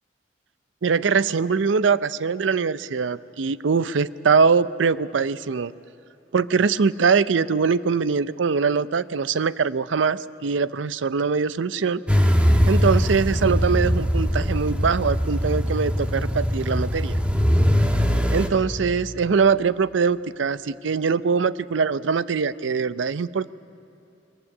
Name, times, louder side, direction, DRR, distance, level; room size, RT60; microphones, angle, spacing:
voice 1, 0.8-5.7 6.3-12.0 12.7-17.2 18.3-23.5, right 5 dB, 75° right, 16 dB, 0.5 m, -22 dB
sound 1, 12.1-18.5, equal, 5° right, 1.3 m, -21 dB
22.5 x 15.0 x 9.8 m, 3.0 s
head